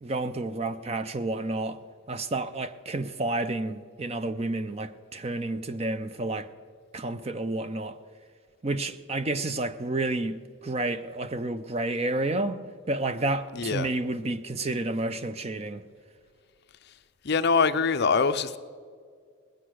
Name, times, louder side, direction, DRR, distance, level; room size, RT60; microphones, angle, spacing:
voice 1, 0.0-1.8 2.1-6.5 6.9-8.0 8.6-12.6 12.9-15.8, right 2 dB, 30° right, 0.5 m, -30 dB
voice 2, 13.5-13.9 17.2-18.6, left 5 dB, 50° left, 0.5 m, -23 dB
20.0 x 8.2 x 6.2 m
head